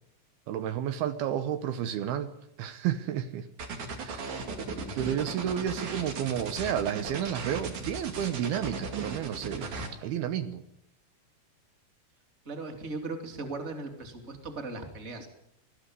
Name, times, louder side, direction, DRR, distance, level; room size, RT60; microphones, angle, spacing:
voice 1, 0.5-2.3 2.6-3.5 4.0-4.2 4.9-9.7 10.0-10.6, right 10 dB, 75° right, 10 dB, 2.8 m, -31 dB
sound 1, 3.6-9.9, right 4 dB, 55° right, 3.6 m, -37 dB
voice 2, 12.4-15.3, right 3 dB, 20° right, 5 dB, 2.4 m, -38 dB
20.0 x 13.5 x 9.7 m, 0.77 s
omnidirectional pair, 4.6 m